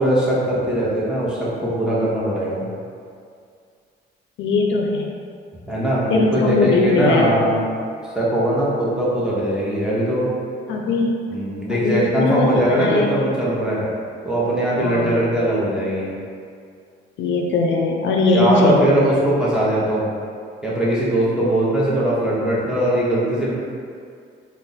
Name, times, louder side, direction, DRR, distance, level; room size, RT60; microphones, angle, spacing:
voice 1, 0.0-2.6 5.6-7.6 8.1-10.3 11.3-13.9 14.2-16.1 18.3-20.1 20.6-23.5, right 1 dB, 5° right, -8 dB, 0.8 m, -20 dB
voice 2, 4.4-5.1 6.1-7.6 10.7-11.2 11.7-13.3 14.8-15.4 17.2-19.0, left 3 dB, 70° left, 0 dB, 0.4 m, -20 dB
2.4 x 2.1 x 3.9 m, 2.3 s
cardioid pair, 90°, 20 cm